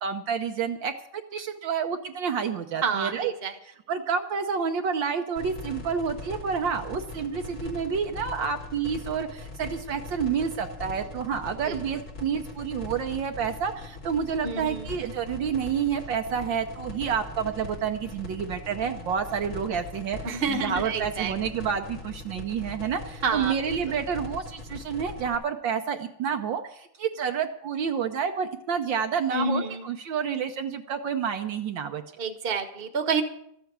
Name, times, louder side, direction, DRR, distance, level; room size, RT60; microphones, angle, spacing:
voice 1, 0.0-0.9 1.3-3.3 3.6-20.2 20.5-32.0, right 7 dB, 70° right, 5 dB, 1.4 m, -29 dB
voice 2, 2.8-3.5 11.6-11.8 14.4-14.9 20.2-21.3 23.2-23.5 29.3-29.9 32.2-33.2, right 4 dB, 30° right, 7 dB, 1.2 m, -28 dB
sound 1, 5.4-25.4, left 3 dB, 70° left, 3.7 m, -40 dB
14.0 x 8.0 x 8.6 m, 0.72 s
omnidirectional pair, 2.3 m